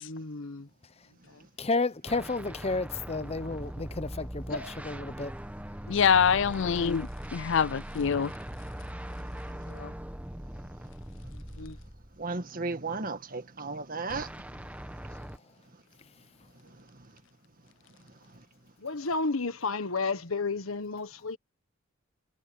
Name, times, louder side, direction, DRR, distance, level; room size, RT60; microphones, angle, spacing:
voice 1, 0.0-0.7 1.3-1.4 4.5-4.7 6.7-7.0 9.6-9.9 11.3-11.8 18.8-21.4, left 3 dB, 90° left, 1.5 m, -33 dB
voice 2, 1.6-5.3, left 3 dB, 30° left, 0.8 m, -31 dB
sound 1, 2.1-12.3 14.1-15.4, equal, 5° right, 1.3 m, -41 dB
voice 3, 5.9-8.3, left 7 dB, 60° left, 0.5 m, -25 dB
voice 4, 12.2-14.3, right 3 dB, 45° right, 1.8 m, -34 dB
head